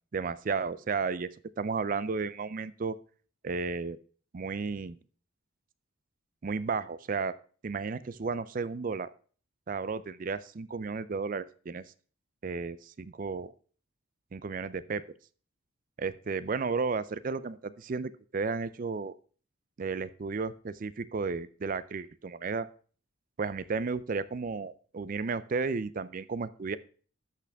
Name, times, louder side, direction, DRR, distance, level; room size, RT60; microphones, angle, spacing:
voice 1, 0.1-1.3 1.6-3.0 3.4-4.0 4.3-5.0 6.4-7.3 7.6-9.1 9.7-11.8 12.4-13.5 14.3-15.0 16.0-19.1 19.8-22.7 23.4-26.8, right 4 dB, 40° right, 16 dB, 0.4 m, -33 dB
12.0 x 5.9 x 3.4 m, 0.41 s
head